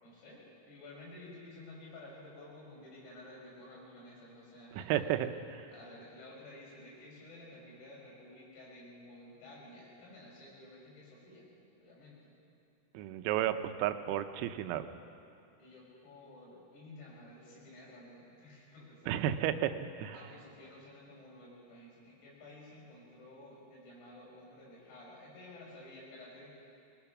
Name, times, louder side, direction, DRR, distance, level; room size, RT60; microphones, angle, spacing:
voice 1, 0.0-5.2 5.7-11.5 11.8-12.4 15.6-19.2 20.1-26.5, left 1 dB, 80° left, -4 dB, 8.7 m, -52 dB
voice 2, 4.7-5.7 13.0-14.9 19.1-20.2, right 11 dB, 90° right, 9 dB, 3.6 m, -33 dB
25.5 x 19.5 x 6.0 m, 2.5 s
omnidirectional pair, 6.0 m